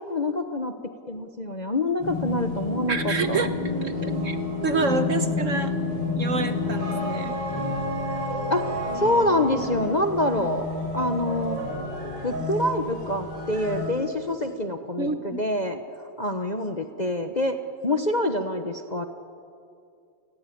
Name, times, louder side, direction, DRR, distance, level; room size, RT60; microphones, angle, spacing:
voice 1, 0.1-0.7 1.1-3.0 3.3-3.4 8.5-10.7 10.9-11.6 12.2-15.8 16.2-17.6 17.8-19.0, left 1 dB, 30° left, 6 dB, 1.0 m, -26 dB
sound 1, 2.0-13.9, left 2 dB, 80° right, 6.9 m, -29 dB
voice 2, 2.9-4.4 4.6-5.7 6.1-7.3 15.0-15.4, right 4 dB, 50° right, 9 dB, 1.3 m, -28 dB
29.5 x 19.5 x 8.6 m, 2.4 s
omnidirectional pair, 2.0 m